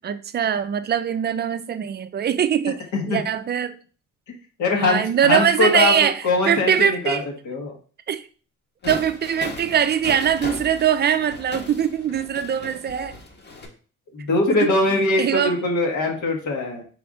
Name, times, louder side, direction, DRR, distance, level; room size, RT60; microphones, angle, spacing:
voice 1, 0.0-3.8 4.8-7.3 8.1-8.3 8.9-13.2 14.5-14.7 15.2-15.6, right 8 dB, 35° right, 0.4 m, -22 dB
voice 2, 4.6-5.9 6.2-7.2 7.4-7.7 14.1-16.8, left 2 dB, 75° left, 1.3 m, -22 dB
sound 1, 8.8-13.7, left 2 dB, 35° left, 1.0 m, -37 dB
4.0 x 3.4 x 3.6 m
cardioid pair, 90°, 30 cm